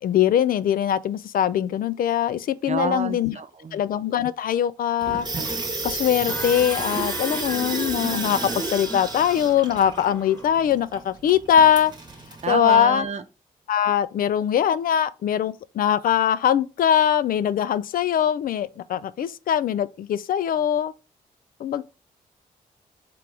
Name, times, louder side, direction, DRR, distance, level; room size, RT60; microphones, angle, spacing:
voice 1, 0.0-3.4 3.7-5.3 5.8-11.9 12.5-13.1 13.7-20.9 21.6-21.8, left 9 dB, 65° left, 0.4 m, -22 dB
voice 2, 2.7-3.8 12.4-13.2, right 5 dB, 45° right, 0.7 m, -28 dB
Water tap faucet / Sink (filling or washing), 5.0-12.6, right 3 dB, 25° right, 1.1 m, -31 dB
sound 1, 6.3-10.7, left 1 dB, 15° left, 1.3 m, -38 dB
3.8 x 3.0 x 4.5 m
supercardioid pair, 50°, 16 cm